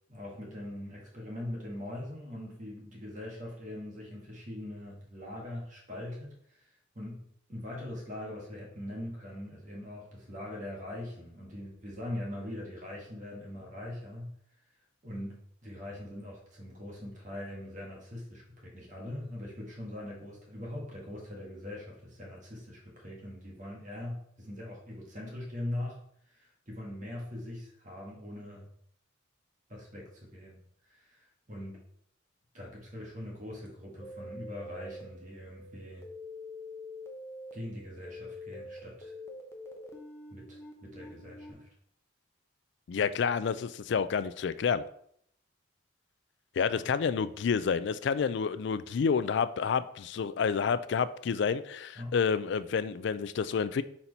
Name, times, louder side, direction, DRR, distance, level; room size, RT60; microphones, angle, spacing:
voice 1, 0.1-14.3 15.0-26.0 26.3-28.7 29.7-30.6 30.9-31.8 32.5-36.0 37.5-39.1 40.3-41.7 46.8-46.9 51.9-52.2, left 1 dB, 40° right, -3 dB, 1.7 m, -42 dB
sound 1, 34.0-41.5, left 1 dB, 15° left, 0.8 m, -46 dB
voice 2, 42.9-44.8 46.6-53.8, left 6 dB, 60° left, 14 dB, 0.3 m, -29 dB
4.4 x 4.2 x 5.2 m, 0.68 s
head